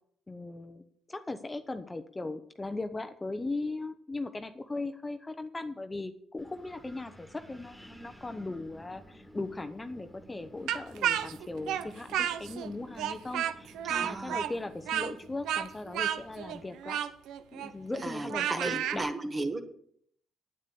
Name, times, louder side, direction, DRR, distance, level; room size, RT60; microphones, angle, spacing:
voice 1, 0.3-17.0 17.5-19.1, left 2 dB, 20° left, 9 dB, 0.8 m, -38 dB
Wind, 6.4-16.7, equal, ahead, 2.2 m, -53 dB
Speech, 10.7-12.7 13.0-19.0, right 10 dB, 85° right, 0.7 m, -32 dB
voice 2, 13.8-14.4 18.0-19.6, right 2 dB, 30° right, 7 dB, 1.6 m, -35 dB
9.3 x 9.0 x 6.9 m, 0.65 s
cardioid pair, 90°, 0 cm